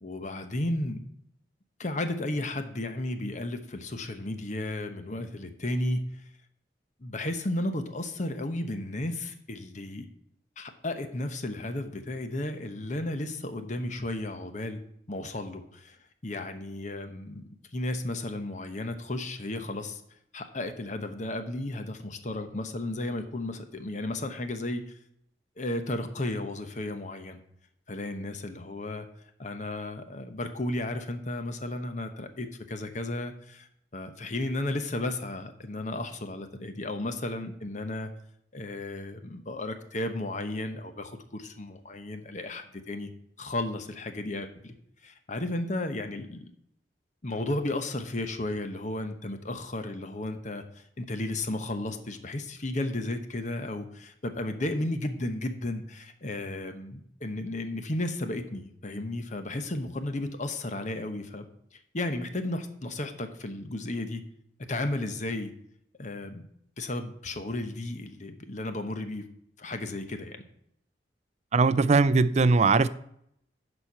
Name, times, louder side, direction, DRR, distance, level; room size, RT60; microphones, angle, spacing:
voice 1, 0.0-1.0 1.8-6.0 7.0-10.1 10.6-14.8 15.1-16.0 16.2-20.0 20.3-24.8 25.6-27.4 27.9-29.1 29.4-33.7 33.9-38.1 38.5-43.1 43.4-44.7 45.0-46.5 47.2-50.6 51.0-61.5 61.9-64.2 64.7-65.5 66.0-66.5 66.8-69.2 69.6-70.4, left 1 dB, 45° left, 1.0 m, -33 dB
voice 2, 71.5-72.9, right 4 dB, 40° right, 0.4 m, -20 dB
11.0 x 4.5 x 5.6 m
head